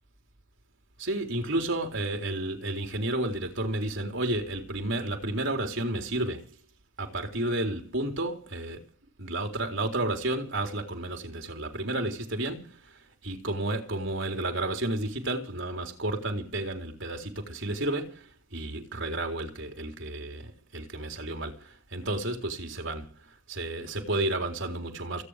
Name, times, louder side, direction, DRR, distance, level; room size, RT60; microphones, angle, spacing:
voice 1, 1.0-6.6 7.0-8.8 9.2-25.2, right 1 dB, 60° right, 3.8 m, -32 dB
29.0 x 9.9 x 5.0 m
head